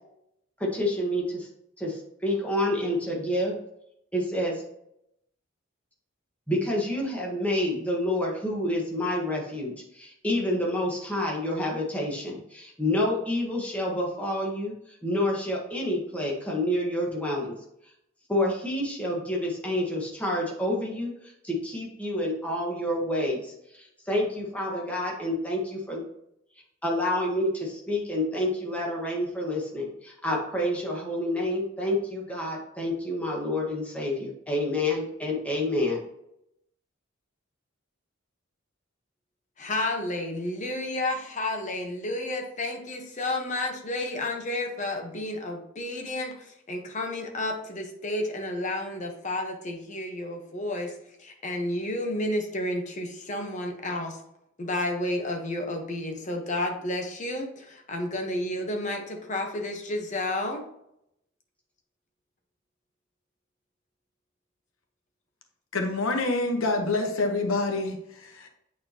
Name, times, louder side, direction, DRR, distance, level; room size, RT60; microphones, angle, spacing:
voice 1, 0.6-1.5 1.8-3.5 4.1-4.6 6.5-17.6 18.3-26.0 26.8-36.0, left 1 dB, 5° left, -3 dB, 1.5 m, -28 dB
voice 2, 39.6-54.2 54.6-60.6, left 1 dB, 35° left, 2 dB, 1.1 m, -31 dB
voice 3, 65.7-68.5, left 2 dB, 85° left, 3 dB, 1.0 m, -27 dB
8.7 x 4.2 x 2.9 m, 0.79 s
head